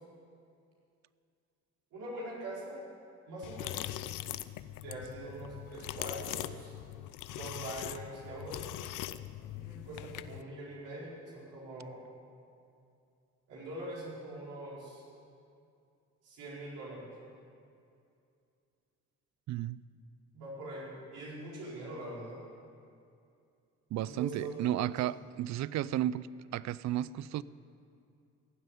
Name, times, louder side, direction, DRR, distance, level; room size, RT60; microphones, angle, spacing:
voice 1, 1.9-2.8 3.3-4.0 4.7-6.7 7.3-8.8 9.5-12.0 13.5-15.0 16.2-17.1 20.3-22.4 24.0-24.6 24.9-25.0, right 1 dB, 85° right, -6 dB, 4.6 m, -43 dB
sound 1, 3.4-10.4, left 14 dB, 90° left, 0.5 m, -41 dB
voice 2, 19.5-19.8 23.9-26.3 26.5-27.4, right 13 dB, 65° right, 19 dB, 0.5 m, -33 dB
16.0 x 7.7 x 9.9 m, 2.5 s
cardioid pair, 90°, 30 cm